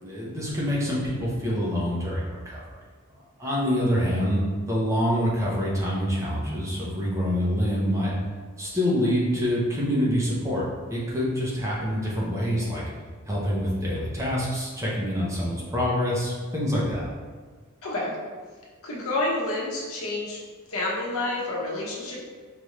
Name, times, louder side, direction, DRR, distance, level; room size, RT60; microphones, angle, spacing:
voice 1, 0.0-2.6 3.4-8.1 8.6-12.8 13.3-17.0, equal, 15° right, -6 dB, 0.8 m, -26 dB
voice 2, 17.8-18.1 18.8-20.4 20.7-22.2, left 2 dB, 70° left, -4 dB, 1.0 m, -29 dB
4.8 x 2.5 x 3.1 m, 1.5 s
head